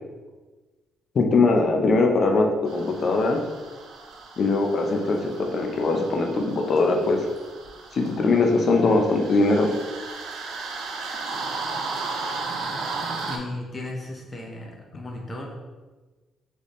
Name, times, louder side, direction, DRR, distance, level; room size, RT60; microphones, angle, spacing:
voice 1, 1.1-3.4 4.4-7.3 7.9-9.7, left 3 dB, 50° left, 2 dB, 0.6 m, -21 dB
sound 1, 2.7-13.4, right 3 dB, 80° right, 0.6 m, -35 dB
voice 2, 13.3-15.5, left 2 dB, 30° left, 0 dB, 0.9 m, -35 dB
4.1 x 3.3 x 3.1 m, 1.2 s
cardioid pair, 90°, 0 cm